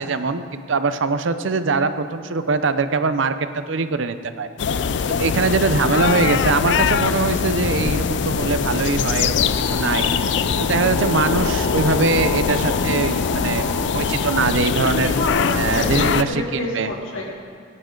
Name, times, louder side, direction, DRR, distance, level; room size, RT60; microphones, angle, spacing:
voice 1, 0.0-4.5 5.2-10.1 10.6-15.1 15.6-16.9, right 4 dB, 75° right, 11 dB, 0.6 m, -22 dB
sound 1, 4.6-16.2, left 6 dB, 60° left, 0.4 m, -22 dB
sound 2, 9.4-14.4, equal, 25° right, 2.6 m, -33 dB
voice 2, 14.8-17.3, left 1 dB, 80° left, -1 dB, 2.3 m, -28 dB
18.5 x 9.7 x 3.8 m, 2.3 s
head